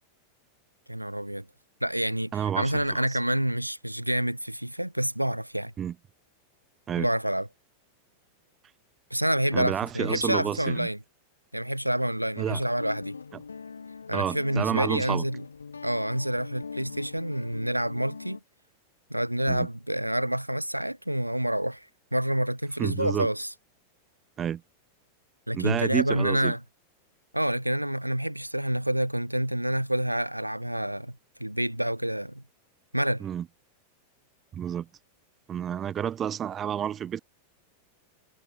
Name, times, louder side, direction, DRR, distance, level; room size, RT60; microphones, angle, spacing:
voice 1, 0.9-1.5 1.8-5.7 7.0-7.5 9.1-11.0 11.5-13.2 14.1-15.4 15.8-18.4 19.1-23.5 25.5-26.6 27.3-32.4 32.9-33.2, right 1 dB, 90° right, 1.7 m, -28 dB
voice 2, 2.3-3.0 5.8-5.9 6.9-7.1 9.5-10.9 12.4-12.6 14.1-15.2 19.5-19.7 22.8-23.3 24.4-24.6 25.5-26.5 33.2-33.5 34.5-34.9 35.5-37.2, right 9 dB, 25° right, 1.6 m, -30 dB
Guitar, 12.8-18.4, left 5 dB, 75° left, 2.1 m, -42 dB
figure-of-eight pair, 90°, 0 cm